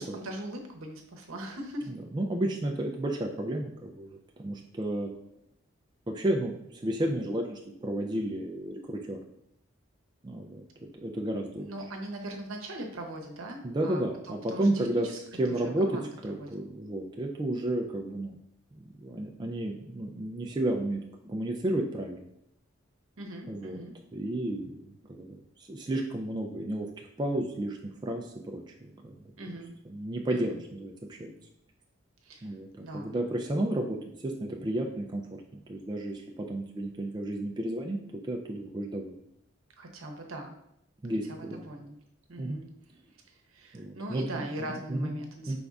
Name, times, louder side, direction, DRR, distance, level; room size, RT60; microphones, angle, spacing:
voice 1, 0.0-1.9 11.6-15.2 15.5-16.5 23.2-23.9 29.4-29.7 30.3-30.5 32.2-33.1 39.8-40.6 41.3-42.0 42.3-42.7 43.3-45.6, right 1 dB, 80° right, 2 dB, 0.8 m, -40 dB
voice 2, 1.9-4.1 4.4-5.1 6.1-9.2 10.2-10.6 11.0-11.7 13.6-15.1 15.4-15.9 16.2-18.4 19.0-22.3 23.5-23.8 24.1-26.9 27.2-29.2 29.9-31.3 32.4-32.7 32.9-34.0 34.2-35.2 35.5-38.0 38.3-39.2 41.0-41.6 42.4-42.6 43.7-45.1 45.5-45.6, right 1 dB, 20° right, 0 dB, 0.3 m, -32 dB
5.2 x 3.4 x 2.4 m, 0.75 s
head